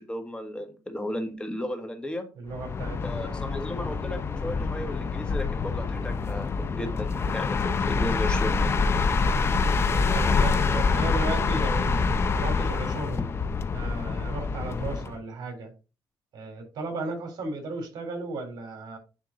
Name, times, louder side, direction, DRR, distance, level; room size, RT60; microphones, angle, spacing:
voice 1, 0.0-2.3 3.0-8.7, left 1 dB, 15° left, 5 dB, 1.6 m, -35 dB
voice 2, 2.4-3.4 10.1-13.3 13.7-15.7 16.3-19.0, right 3 dB, 65° right, 3 dB, 3.8 m, -35 dB
sound 1, 2.5-15.2, left 4 dB, 35° left, 0.7 m, -26 dB
9.6 x 3.6 x 4.0 m, 0.31 s
cardioid pair, 115°, 8 cm